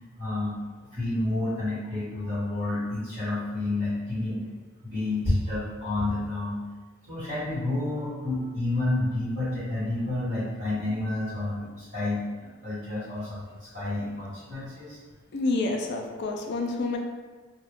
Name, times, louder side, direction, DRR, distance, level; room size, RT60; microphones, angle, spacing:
voice 1, 0.2-4.4 4.8-6.6 7.0-15.0, left 2 dB, 45° right, -11 dB, 1.5 m, -30 dB
voice 2, 15.3-17.0, left 3 dB, 55° left, 2 dB, 0.4 m, -28 dB
2.5 x 2.2 x 3.4 m, 1.3 s
head